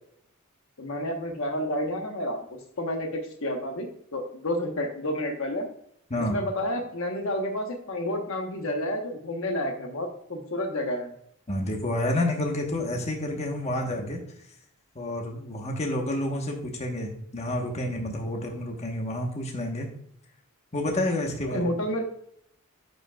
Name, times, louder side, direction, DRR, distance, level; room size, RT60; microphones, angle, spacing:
voice 1, 0.8-5.7 6.3-11.1 21.5-22.0, left 1 dB, 65° left, 3 dB, 1.1 m, -30 dB
voice 2, 11.5-14.2 14.9-19.9 20.7-21.7, left 1 dB, 30° left, 1 dB, 1.1 m, -29 dB
10.5 x 5.1 x 2.3 m, 0.68 s
head